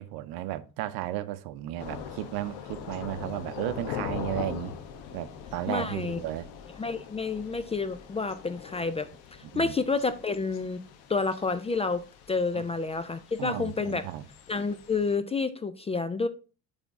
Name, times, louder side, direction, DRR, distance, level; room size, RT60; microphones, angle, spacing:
voice 1, 0.0-4.7 5.1-6.5 9.5-9.7 12.5-12.6 13.4-14.2, right 14 dB, 75° right, 0.7 m, -34 dB
Thunder / Rain, 1.8-15.2, left 7 dB, 75° left, 0.9 m, -42 dB
voice 2, 5.7-6.2 6.8-9.1 9.6-10.8 11.1-14.1 14.5-16.3, left 4 dB, 20° left, 0.3 m, -29 dB
8.1 x 3.5 x 3.5 m
cardioid pair, 100°, 38 cm